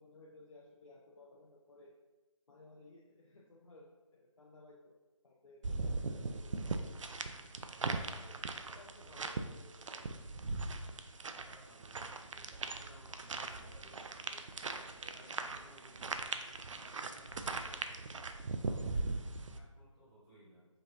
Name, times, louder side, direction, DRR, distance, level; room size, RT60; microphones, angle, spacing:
voice 1, 0.0-1.9 2.5-4.9 5.2-5.6 6.1-6.8 8.2-8.4 8.7-10.4, left 2 dB, 75° left, -3 dB, 0.6 m, -59 dB
sound 1, 5.6-19.6, right 3 dB, 65° right, 0.4 m, -40 dB
voice 2, 8.2-8.6 11.4-14.5 14.8-18.2 18.6-19.2 19.5-20.7, equal, 5° right, -14 dB, 1.0 m, -60 dB
5.2 x 2.7 x 2.6 m, 1.2 s
figure-of-eight pair, 170°, 17 cm